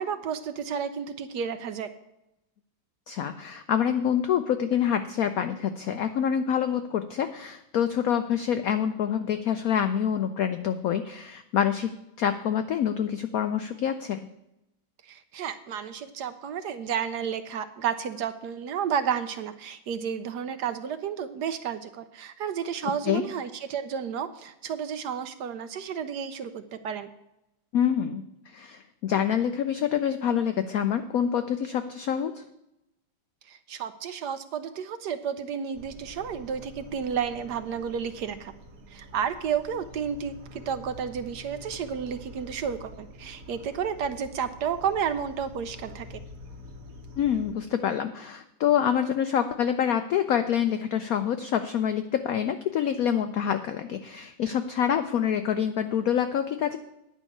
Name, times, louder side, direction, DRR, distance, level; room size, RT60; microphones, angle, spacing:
voice 1, 0.0-1.9 15.0-27.1 33.5-38.5 38.9-46.2, right 7 dB, 70° right, 10 dB, 1.1 m, -31 dB
voice 2, 3.1-14.3 23.1-23.2 27.7-32.4 47.2-56.8, left 9 dB, 80° left, 9 dB, 0.8 m, -26 dB
sound 1, 35.7-47.5, left 1 dB, 50° right, 1.4 m, -46 dB
10.0 x 5.5 x 8.4 m, 0.89 s
omnidirectional pair, 2.1 m